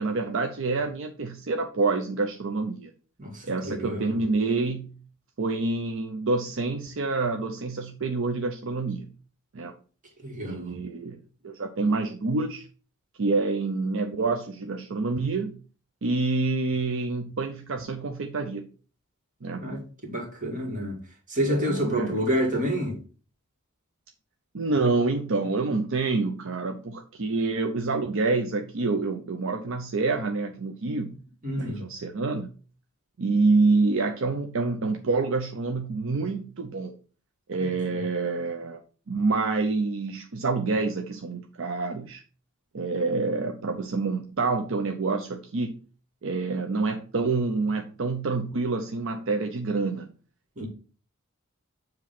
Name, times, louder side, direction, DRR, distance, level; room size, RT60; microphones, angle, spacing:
voice 1, 0.0-2.9 3.4-5.0 5.4-9.1 9.5-9.7 10.4-12.7 13.2-15.6 16.0-18.7 19.4-19.6 21.5-22.2 24.5-31.2 31.6-32.5 33.2-36.9 37.5-38.8 39.1-42.2 42.7-45.8 46.2-50.1, right 3 dB, 65° right, 0.6 m, -27 dB
voice 2, 3.2-4.2 10.2-10.7 19.5-21.0 21.3-23.0 31.4-31.8 50.6-50.7, equal, 40° right, 2.2 m, -28 dB
7.4 x 3.1 x 5.8 m
head